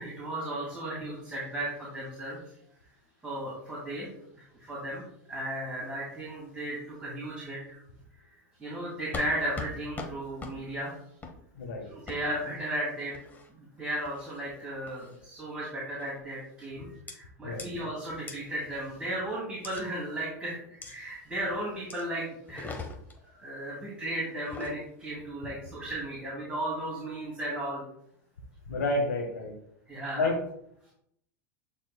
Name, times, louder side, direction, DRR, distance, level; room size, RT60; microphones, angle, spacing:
voice 1, 0.0-2.4 3.2-5.0 5.3-7.8 8.6-10.9 11.9-13.2 13.5-22.7 23.4-27.8 29.9-30.3, right 1 dB, 10° right, -7 dB, 2.8 m, -35 dB
sound 1, 9.1-9.3 9.6-9.7 10.0-10.1 10.4-10.5 11.2-11.4 12.1-12.2 13.1-13.5 14.0-14.4 14.9-15.2 16.0-16.3 17.1-17.2 17.6-17.7 18.3-18.4 19.6-19.8 20.8-20.9 21.9-22.0 22.5-23.2 24.3-24.8, left 3 dB, 20° left, 1.2 m, -40 dB
voice 2, 11.5-11.9 17.4-17.6 28.7-29.5 30.2-30.4, left 2 dB, 90° left, -2 dB, 1.5 m, -29 dB
11.0 x 4.3 x 2.3 m, 0.73 s
hypercardioid pair, 100°, 9 cm